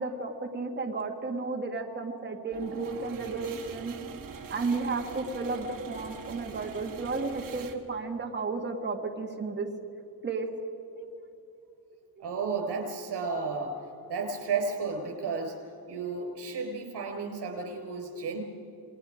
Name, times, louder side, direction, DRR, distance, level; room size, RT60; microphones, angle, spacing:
voice 1, 0.0-3.9 4.5-9.7 10.2-10.5 11.0-11.1 12.2-12.3, right 3 dB, 25° right, 2 dB, 1.8 m, -33 dB
sound 1, 2.5-7.8, right 6 dB, 55° right, 1.9 m, -43 dB
voice 2, 12.2-13.8 14.1-15.6 15.9-18.4, right 4 dB, 80° right, 3 dB, 5.1 m, -33 dB
29.0 x 20.5 x 5.0 m, 2.8 s
wide cardioid pair, 165°, 39 cm